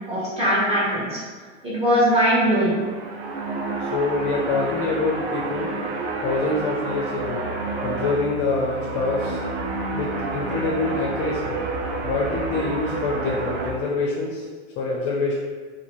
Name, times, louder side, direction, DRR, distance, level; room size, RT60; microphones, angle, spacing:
voice 1, 0.1-1.2 1.6-2.8, equal, 15° right, -9 dB, 1.2 m, -20 dB
sound 1, 2.6-13.7, right 3 dB, 60° right, 0.6 m, -30 dB
voice 2, 3.8-5.8 6.2-7.5 7.8-9.4 9.9-11.6 12.0-14.5 14.8-15.4, left 3 dB, 40° left, -4 dB, 0.5 m, -25 dB
sound 2, 7.2-13.6, right 6 dB, 10° left, 0.9 m, -38 dB
2.6 x 2.6 x 2.9 m, 1.5 s
hypercardioid pair, 115°, 37 cm